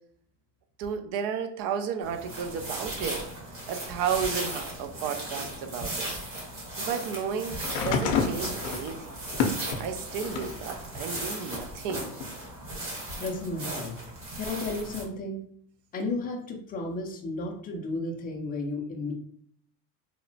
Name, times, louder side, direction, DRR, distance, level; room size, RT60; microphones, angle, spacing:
voice 1, 0.8-3.3 3.7-6.1 6.8-9.1 9.8-12.1, right 7 dB, 50° right, 7 dB, 0.4 m, -33 dB
sound 1, 2.0-15.0, right 1 dB, 30° right, 1.1 m, -37 dB
sound 2, 7.6-10.6 11.1-12.3 13.3-13.4, left 5 dB, 70° left, 0.6 m, -30 dB
voice 2, 13.2-14.0 14.4-15.4 15.9-19.1, left 2 dB, 20° left, 2 dB, 0.3 m, -33 dB
2.9 x 2.0 x 2.6 m, 0.63 s
supercardioid pair, 115°, 45 cm